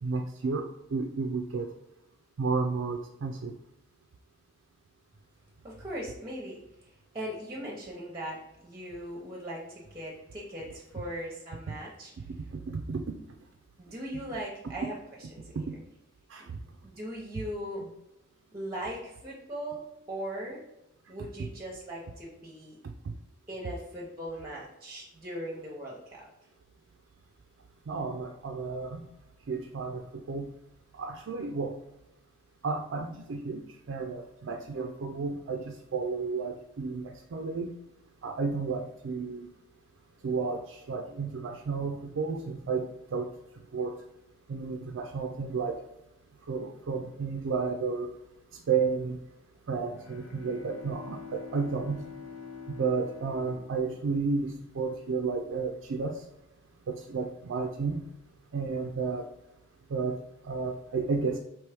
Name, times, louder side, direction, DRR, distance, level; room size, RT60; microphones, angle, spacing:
voice 1, 0.0-1.7 2.4-3.6 11.7-11.8 12.7-13.2 15.6-15.7 16.3-16.5 21.4-21.5 22.8-22.9 27.9-29.1 29.5-30.5 30.9-31.8 32.6-37.7 38.2-39.5 40.2-43.3 43.7-44.0 44.5-45.8 46.5-48.1 48.7-49.2 49.7-52.1 52.7-56.2 56.9-58.0 58.5-59.3 59.9-61.4, right 4 dB, 70° right, 4 dB, 0.4 m, -32 dB
voice 2, 5.6-12.3 13.8-15.0 15.3-15.7 16.8-17.8 18.5-19.8 20.1-20.6 21.1-22.8 23.5-26.3, equal, 20° right, -2 dB, 0.8 m, -39 dB
Bowed string instrument, 49.8-54.7, left 6 dB, 75° left, 0.6 m, -46 dB
4.5 x 3.1 x 3.4 m, 0.87 s
head